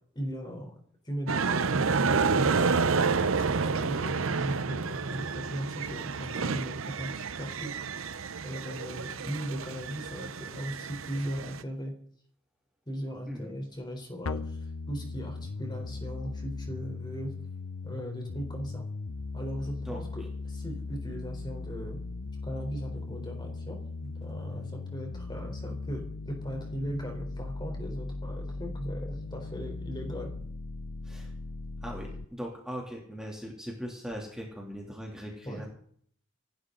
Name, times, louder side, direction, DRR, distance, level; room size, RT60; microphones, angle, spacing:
voice 1, 0.1-0.7 1.1-7.7 8.4-11.9 12.9-14.6 14.9-17.3 17.8-18.9 19.3-22.0 22.4-30.3 35.4-35.6, equal, 20° left, 3 dB, 3.9 m, -38 dB
sound 1, 1.3-11.6, right 4 dB, 70° right, 0.8 m, -29 dB
sound 2, 14.2-32.2, left 3 dB, 85° left, 0.8 m, -38 dB
voice 2, 31.8-35.7, equal, 5° right, -2 dB, 2.9 m, -40 dB
26.5 x 12.5 x 3.9 m, 0.62 s
head